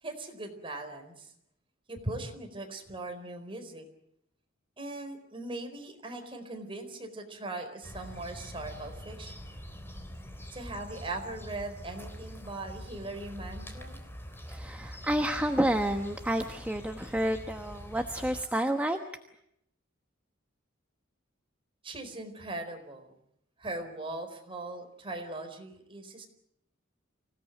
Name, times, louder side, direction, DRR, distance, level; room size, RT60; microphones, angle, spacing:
voice 1, 0.0-1.3 1.9-3.9 4.8-9.6 10.5-14.0 21.8-23.1 23.6-26.3, right 2 dB, 25° right, 4 dB, 4.4 m, -40 dB
sound 1, 7.8-18.4, equal, 10° left, 3.5 m, -44 dB
voice 2, 14.5-19.0, right 1 dB, 5° right, 5 dB, 1.1 m, -29 dB
26.0 x 17.5 x 9.3 m, 0.78 s
head